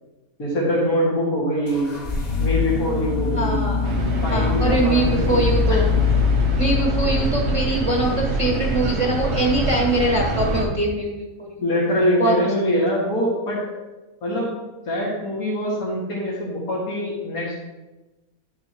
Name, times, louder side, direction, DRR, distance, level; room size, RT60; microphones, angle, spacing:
voice 1, 0.4-1.9 2.4-3.7 4.2-5.4 5.7-5.8 11.6-13.6 14.2-14.5 14.8-17.6, equal, 65° left, -6 dB, 2.5 m, -23 dB
sound 1, 1.7-7.6, left 6 dB, 30° left, 1.2 m, -23 dB
voice 2, 3.3-3.9 4.3-5.9 6.6-11.6 12.2-12.5, right 1 dB, 25° right, -2 dB, 1.1 m, -23 dB
sound 2, 3.8-10.6, right 2 dB, 90° right, 1.7 m, -25 dB
11.0 x 6.8 x 3.0 m, 1.1 s
omnidirectional pair, 1.6 m